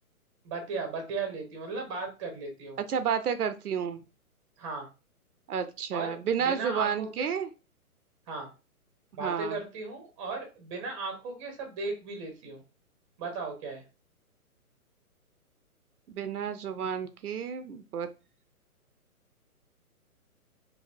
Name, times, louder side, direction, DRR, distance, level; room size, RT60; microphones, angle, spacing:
voice 1, 0.4-2.8 4.6-4.9 5.9-7.3 8.3-8.5 9.1-12.6 13.2-13.8, right 4 dB, 20° right, 4 dB, 0.9 m, -36 dB
voice 2, 2.9-4.0 5.5-7.5 9.2-9.6 16.1-18.1, right 7 dB, 80° right, 10 dB, 0.6 m, -31 dB
4.0 x 2.7 x 2.6 m, 0.31 s
hypercardioid pair, 145°, 45 cm